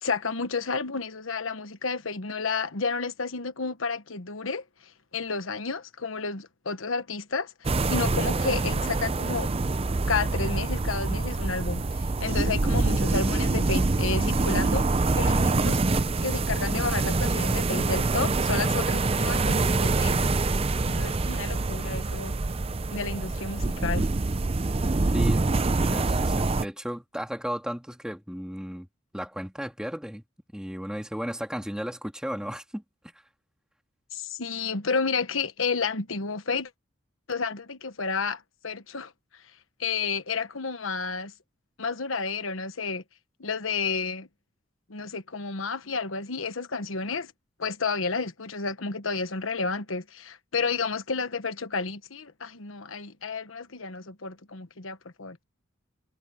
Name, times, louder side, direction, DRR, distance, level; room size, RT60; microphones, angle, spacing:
voice 1, 0.0-4.6 5.1-9.5 10.1-14.8 15.2-15.8 16.2-20.2 20.9-22.4 22.9-24.1 34.1-36.7 37.3-39.1 39.8-41.3 41.8-43.0 43.4-44.3 44.9-47.3 47.6-55.4, left 4 dB, 90° left, 1.3 m, -31 dB
sound 1, 7.6-26.6, right 3 dB, 30° right, 0.5 m, -25 dB
voice 2, 25.1-28.9 29.1-30.2 30.5-32.8, equal, 5° right, 2.5 m, -34 dB
head